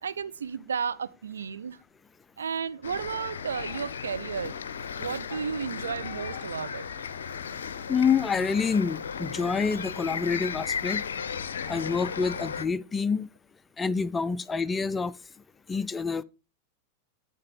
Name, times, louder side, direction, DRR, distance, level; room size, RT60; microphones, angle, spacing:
voice 1, 0.0-1.8 2.4-4.6 5.0-6.9, right 6 dB, 70° right, 0.4 m, -33 dB
sound 1, 2.8-12.7, left 6 dB, 65° left, 0.5 m, -35 dB
voice 2, 7.9-11.0 11.7-13.3 13.8-15.1 15.7-16.2, left 5 dB, 15° left, 0.3 m, -27 dB
9.8 x 4.6 x 5.6 m
figure-of-eight pair, 90°, 0 cm